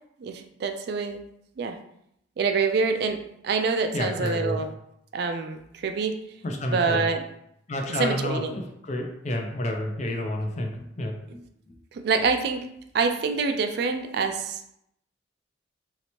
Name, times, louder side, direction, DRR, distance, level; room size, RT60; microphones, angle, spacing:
voice 1, 0.2-1.2 1.6-1.8 2.4-4.7 5.1-6.2 6.7-7.2 8.0-8.5 11.9-12.7 12.9-14.6, right 4 dB, 60° right, 6 dB, 0.3 m, -26 dB
voice 2, 3.9-4.6 6.4-7.1 7.7-11.4 11.7-11.8, left 1 dB, 40° left, 3 dB, 0.5 m, -30 dB
3.1 x 2.8 x 2.9 m, 0.76 s
head